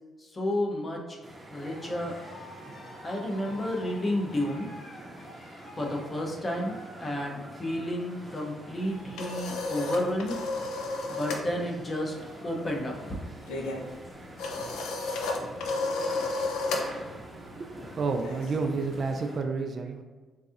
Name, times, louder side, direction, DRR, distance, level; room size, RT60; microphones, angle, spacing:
voice 1, 0.2-1.0 1.5-2.1 3.0-4.7 5.8-10.4 11.1-12.1 12.4-12.9, left 1 dB, 30° left, 0 dB, 0.7 m, -31 dB
sound 1, 1.2-19.5, right 1 dB, 15° right, 0.6 m, -47 dB
Cheering, 1.4-12.7 13.0-13.4 13.9-14.0 14.1-15.0, equal, 60° left, 1.3 m, -50 dB
sound 2, 8.8-11.5 11.8-12.1 12.3-19.0, left 3 dB, 90° left, 0.5 m, -33 dB
voice 2, 17.3-20.0, right 4 dB, 50° right, 5 dB, 0.3 m, -31 dB
4.0 x 2.6 x 2.4 m, 1.4 s
cardioid pair, 90°, 0 cm